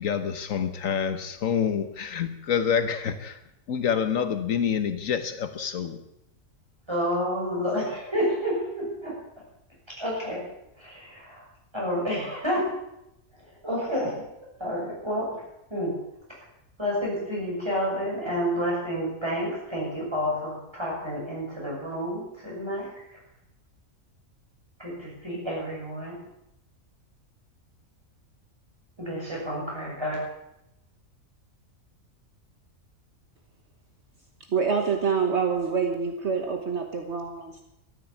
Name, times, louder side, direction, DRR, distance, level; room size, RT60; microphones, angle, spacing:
voice 1, 0.0-3.4 3.7-6.0, left 7 dB, 75° left, 10 dB, 1.4 m, -27 dB
voice 2, 6.9-9.2 10.0-10.4 10.8-11.4 11.7-12.7 13.6-14.2 14.6-15.3 15.7-15.9 16.8-23.2 24.8-26.1 29.0-30.2, equal, 20° right, -4 dB, 6.6 m, -29 dB
voice 3, 34.5-37.6, right 5 dB, 55° right, 4 dB, 1.5 m, -26 dB
13.5 x 10.0 x 8.4 m, 0.86 s
omnidirectional pair, 1.4 m